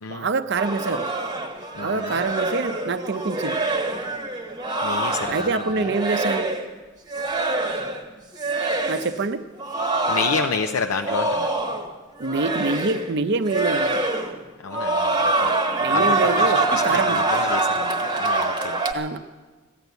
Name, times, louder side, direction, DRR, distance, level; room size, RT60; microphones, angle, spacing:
voice 1, 0.1-1.1 1.7-3.6 5.3-6.5 8.9-9.4 12.2-14.0 15.8-17.2 18.9-19.2, right 3 dB, 50° right, 10 dB, 0.6 m, -25 dB
sound 1, 0.5-6.7 7.1-8.1 8.3-9.1 9.6-11.9 12.2-13.1 13.4-14.4 14.7-18.9, right 2 dB, 20° right, 1.0 m, -25 dB
voice 2, 1.8-2.2 4.8-5.9 10.1-11.5 14.6-15.5 15.9-18.8, left 5 dB, 80° left, 5 dB, 0.6 m, -30 dB
15.0 x 11.0 x 8.1 m, 1.3 s
head